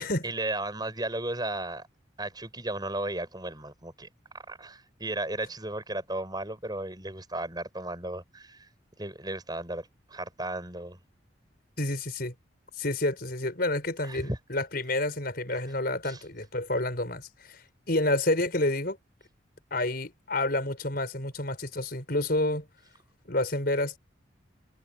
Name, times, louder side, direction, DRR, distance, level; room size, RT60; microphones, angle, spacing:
voice 1, 0.0-1.9 2.2-4.1 4.3-8.7 9.0-11.0 14.0-14.4 15.5-15.6 16.0-16.2, right 2 dB, 20° right, 7.1 m, -35 dB
voice 2, 11.8-12.3 12.8-17.6 17.9-19.0 19.7-22.7 23.3-24.0, left 2 dB, 50° left, 5.5 m, -29 dB
head